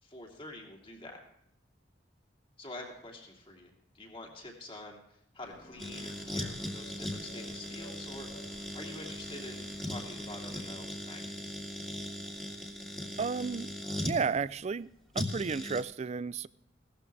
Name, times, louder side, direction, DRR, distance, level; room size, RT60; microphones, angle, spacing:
voice 1, 0.0-1.2 2.6-11.6, left 1 dB, 30° left, 2.8 m, -47 dB
sound 1, 5.4-10.7, left 1 dB, 75° left, 4.4 m, -55 dB
sound 2, 5.8-14.2 15.1-15.8, left 1 dB, 5° left, 2.2 m, -39 dB
voice 2, 13.2-13.7 14.0-14.9 15.1-16.5, right 5 dB, 35° right, 0.4 m, -32 dB
17.0 x 13.5 x 3.4 m
head